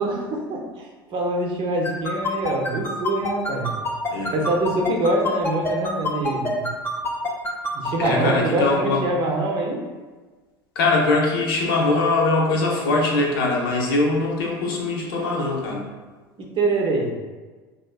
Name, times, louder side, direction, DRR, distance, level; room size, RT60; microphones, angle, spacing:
voice 1, 0.0-3.7 4.3-6.6 7.7-9.8 16.4-17.1, right 2 dB, 45° right, 1 dB, 0.6 m, -24 dB
sound 1, 1.8-8.1, left 2 dB, 20° left, 0.6 m, -26 dB
voice 2, 8.0-9.0 10.8-15.8, left 3 dB, 70° left, 0 dB, 0.6 m, -22 dB
3.4 x 2.5 x 2.3 m, 1.3 s
hypercardioid pair, 70°, 12 cm